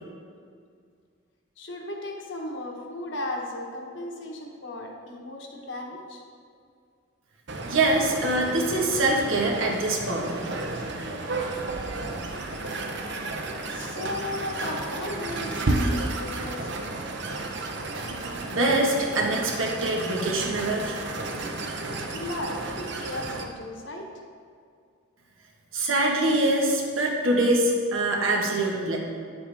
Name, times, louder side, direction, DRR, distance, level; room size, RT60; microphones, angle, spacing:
voice 1, 1.6-6.2 13.7-17.0 22.1-24.1, left 1 dB, 60° left, 1 dB, 1.2 m, -36 dB
sound 1, 7.5-23.4, right 2 dB, 55° right, 0.8 m, -32 dB
voice 2, 7.6-10.4 18.4-21.0 25.7-29.0, right 2 dB, 75° right, -1 dB, 1.4 m, -24 dB
9.9 x 7.7 x 3.5 m, 2.2 s
head